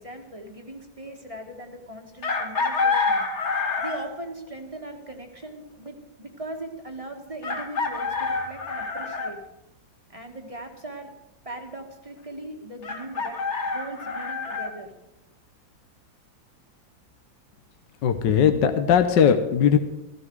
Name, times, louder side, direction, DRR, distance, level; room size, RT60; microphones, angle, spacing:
voice 1, 0.0-3.2 3.8-9.4 10.1-11.1 11.4-14.9, right 1 dB, 20° right, 3 dB, 1.7 m, -39 dB
Chicken rooster, 2.2-4.2 5.9-6.0 7.4-9.3 12.8-14.7, left 4 dB, 40° left, 1.6 m, -27 dB
voice 2, 18.0-19.8, left 8 dB, 70° left, 8 dB, 1.6 m, -19 dB
15.0 x 14.5 x 4.8 m, 0.93 s
omnidirectional pair, 2.0 m